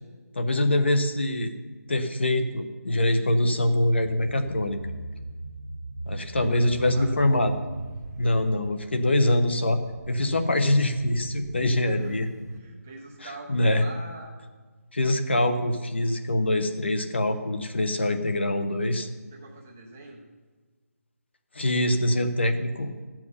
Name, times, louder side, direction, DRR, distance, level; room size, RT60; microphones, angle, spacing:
voice 1, 0.3-1.5 1.9-4.9 6.1-7.5 8.2-9.8 10.1-12.2 13.2-13.8 14.9-19.1 21.5-22.9, left 1 dB, 45° left, 7 dB, 1.0 m, -24 dB
sound 1, 3.7-12.6, right 2 dB, 85° right, 1.2 m, -40 dB
voice 2, 6.3-7.1 11.9-12.2 12.5-14.3 19.3-20.2, right 2 dB, 5° right, -1 dB, 0.5 m, -44 dB
13.5 x 7.5 x 5.6 m, 1.4 s
figure-of-eight pair, 180°, 9 cm